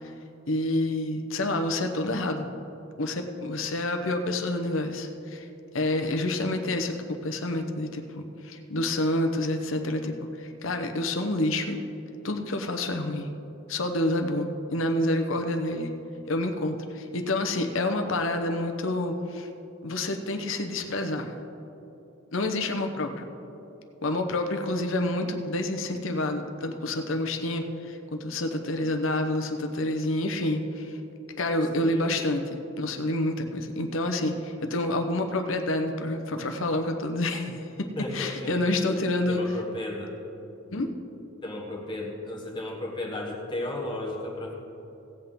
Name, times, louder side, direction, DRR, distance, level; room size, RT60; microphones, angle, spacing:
voice 1, 0.5-2.5 3.0-5.5 5.7-7.0 7.2-11.8 12.2-13.3 13.7-15.9 16.3-19.5 19.8-21.3 22.3-23.3 24.0-31.0 31.4-39.4 40.7-40.9, left 1 dB, 75° left, 5 dB, 0.9 m, -28 dB
voice 2, 31.8-32.1 38.0-38.6 38.9-40.2 41.4-44.5, left 1 dB, 20° left, -2 dB, 1.3 m, -34 dB
17.0 x 8.1 x 3.7 m, 2.9 s
head